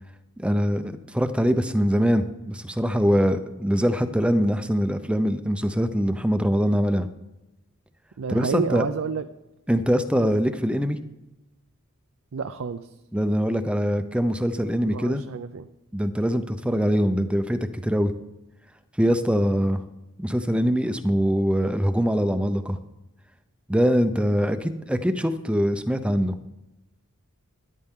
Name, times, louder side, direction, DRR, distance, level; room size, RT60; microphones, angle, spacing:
voice 1, 0.4-7.1 8.3-8.8 9.7-11.0 13.1-15.2 15.9-18.1 19.0-19.8 20.2-22.8 23.7-26.4, equal, 5° right, 10 dB, 0.5 m, -23 dB
voice 2, 8.2-9.2 10.2-10.4 12.3-12.9 14.9-15.7, right 6 dB, 65° right, 8 dB, 0.5 m, -30 dB
13.0 x 11.0 x 3.7 m, 0.99 s
head